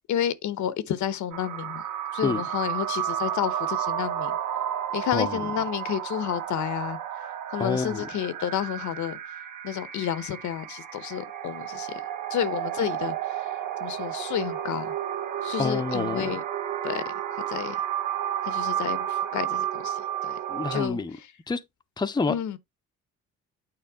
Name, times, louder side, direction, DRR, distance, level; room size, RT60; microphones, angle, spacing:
voice 1, 0.1-1.8 2.1-4.4 4.9-7.0 7.5-9.2 9.6-11.9 12.3-13.1 13.8-14.9 15.4-16.4 16.8-17.0 17.3-17.8 18.4-20.0 20.2-20.4 20.7-21.0 22.3-22.6, left 10 dB, 70° left, 1.0 m, -30 dB
sound 1, 1.3-20.9, right 10 dB, 85° right, 1.8 m, -32 dB
voice 2, 5.1-5.4 7.6-8.1 15.6-16.3 20.5-21.2 21.5-21.6 22.0-22.3, left 4 dB, 15° left, 0.6 m, -28 dB
8.8 x 4.2 x 3.6 m
cardioid pair, 90°, 30 cm